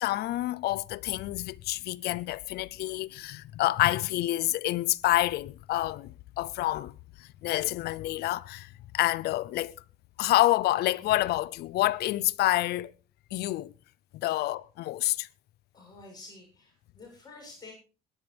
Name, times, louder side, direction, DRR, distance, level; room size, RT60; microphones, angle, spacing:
voice 1, 0.0-6.9 7.2-8.7 8.9-9.7 10.2-12.9 13.3-13.7 14.1-15.3, left 16 dB, 75° left, 0.6 m, -28 dB
voice 2, 15.7-17.7, left 3 dB, 25° left, 7.6 m, -49 dB
21.5 x 10.5 x 3.4 m
cardioid pair, 110°, 17 cm